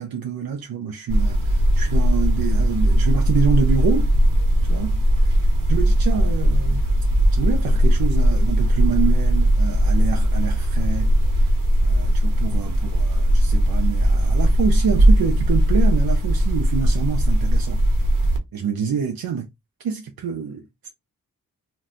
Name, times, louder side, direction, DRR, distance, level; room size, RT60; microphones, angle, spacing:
voice 1, 0.0-4.1 4.6-6.8 7.3-11.1 11.4-11.5 11.8-18.0 18.5-19.5 19.8-20.9, right 6 dB, 85° right, 0.6 m, -27 dB
sound 1, 1.1-18.4, equal, 60° right, 0.9 m, -18 dB
2.6 x 2.2 x 3.6 m
wide cardioid pair, 85°, 35 cm